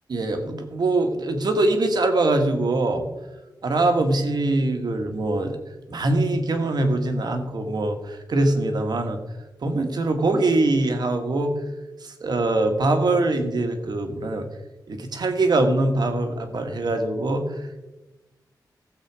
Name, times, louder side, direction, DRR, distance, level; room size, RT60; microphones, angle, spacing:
voice 1, 0.1-3.1 3.6-5.6 5.9-9.2 9.6-11.5 12.0-14.5 14.9-17.9, right 2 dB, 65° right, 6 dB, 1.7 m, -23 dB
16.0 x 7.5 x 4.9 m, 1.1 s
wide cardioid pair, 105°, 8 cm